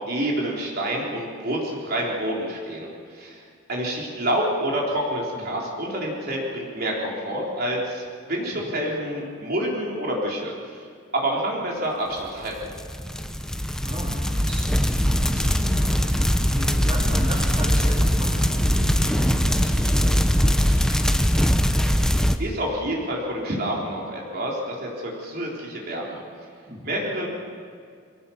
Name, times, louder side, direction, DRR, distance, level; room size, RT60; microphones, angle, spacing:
voice 1, 0.1-10.9 11.1-12.6 21.9-22.1 22.4-26.2 26.8-27.3, right 1 dB, 50° right, -3 dB, 3.9 m, -28 dB
voice 2, 8.5-8.8 13.8-21.5 26.7-27.0, equal, 25° right, -3 dB, 3.8 m, -36 dB
sound 1, 12.6-22.4, equal, 5° left, 0.8 m, -21 dB
23.5 x 18.0 x 7.1 m, 2.2 s
head